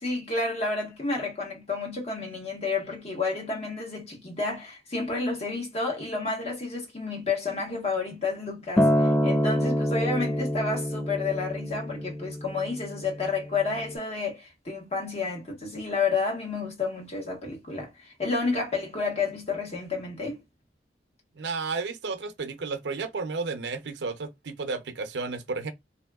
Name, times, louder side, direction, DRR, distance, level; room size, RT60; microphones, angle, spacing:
voice 1, 0.0-20.4, left 4 dB, 35° left, 1.1 m, -30 dB
Acoustic guitar, 8.8-13.1 13.9-14.0, equal, 10° left, 0.3 m, -26 dB
voice 2, 21.4-25.7, right 4 dB, 85° right, 0.6 m, -32 dB
3.4 x 2.7 x 2.3 m
head